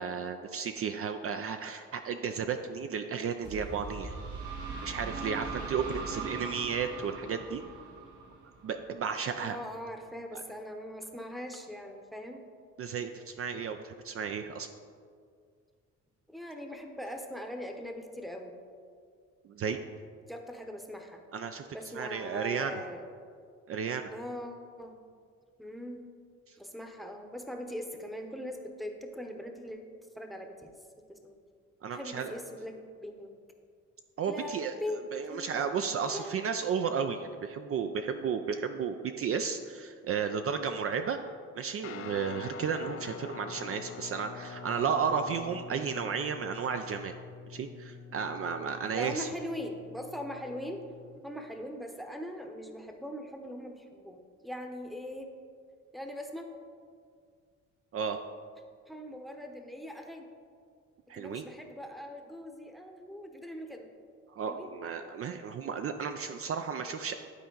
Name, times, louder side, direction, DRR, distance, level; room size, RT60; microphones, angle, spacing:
voice 1, 0.0-4.2 4.8-7.6 8.6-9.6 10.3-10.4 12.8-14.7 19.4-19.8 21.3-21.7 21.9-22.8 23.7-24.1 26.5-26.6 31.8-32.3 34.2-34.7 35.1-41.2 41.6-47.1 47.5-49.3 57.9-58.2 61.1-61.4 64.3-67.2, right 6 dB, 50° right, 7 dB, 0.4 m, -33 dB
sound 1, 3.4-9.1, right 4 dB, 75° right, 1.4 m, -40 dB
voice 2, 9.4-12.4 16.3-18.5 20.3-21.2 21.7-23.1 24.1-25.0 25.6-26.1 26.6-30.7 31.1-31.3 31.9-33.3 34.3-35.0 35.3-36.3 48.9-50.8 51.2-55.3 55.9-56.5 58.9-60.3 61.1-63.9 64.5-64.7, equal, ahead, 4 dB, 0.8 m, -41 dB
Guitar, 41.8-51.2, left 6 dB, 50° left, 0.5 m, -46 dB
11.0 x 4.3 x 3.9 m, 2.1 s
cardioid pair, 90°, 30 cm